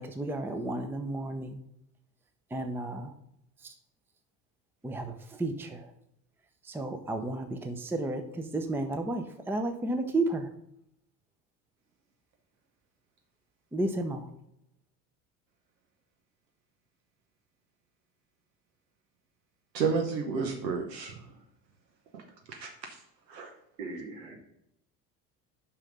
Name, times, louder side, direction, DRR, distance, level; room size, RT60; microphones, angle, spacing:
voice 1, 0.0-1.6 2.5-3.1 3.6-3.7 4.8-5.9 6.6-10.5 13.7-14.3, right 2 dB, 5° right, 7 dB, 0.6 m, -32 dB
voice 2, 19.7-21.2 22.1-22.2 22.5-23.0 23.3-23.5, right 5 dB, 80° right, 3 dB, 1.1 m, -31 dB
voice 3, 23.8-24.4, right 3 dB, 60° right, 0 dB, 2.4 m, -40 dB
5.7 x 5.5 x 5.3 m, 0.77 s
hypercardioid pair, 70°, 49 cm